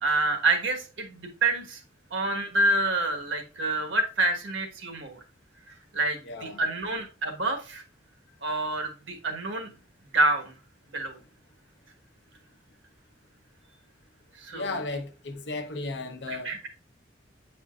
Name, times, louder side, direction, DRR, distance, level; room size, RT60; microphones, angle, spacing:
voice 1, 0.0-1.8 2.1-5.2 5.7-7.8 8.4-9.7 10.1-10.6 10.9-11.2 14.4-14.7 16.3-16.7, right 2 dB, 80° right, 1.4 m, -27 dB
voice 2, 6.2-6.6 14.5-16.5, left 3 dB, 65° left, 0.8 m, -35 dB
8.5 x 5.1 x 2.4 m
head